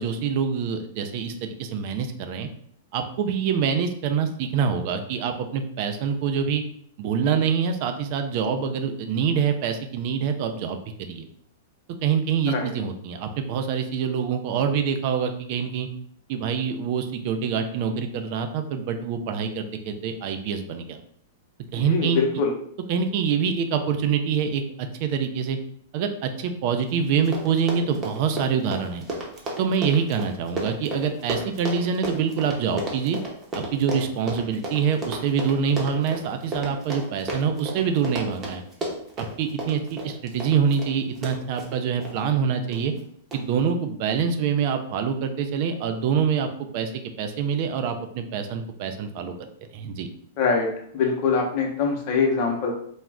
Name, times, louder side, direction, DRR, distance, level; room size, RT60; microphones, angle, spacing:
voice 1, 0.0-2.5 2.9-6.6 7.0-10.8 11.1-11.3 12.0-15.9 16.3-21.0 21.7-22.2 22.9-25.6 25.9-29.1 29.6-33.2 33.5-38.6 39.2-42.9 43.3-46.9 47.2-49.3 49.7-50.1, right 6 dB, 50° right, 6 dB, 0.4 m, -25 dB
voice 2, 21.8-22.5 50.4-50.7 50.9-52.7, left 5 dB, 50° left, 1 dB, 0.7 m, -23 dB
Run, 26.9-27.0 27.2-42.2 42.7-43.0 43.3-43.4, right 1 dB, 25° right, 0.8 m, -33 dB
2.4 x 2.1 x 3.4 m, 0.65 s
hypercardioid pair, 110°, 0 cm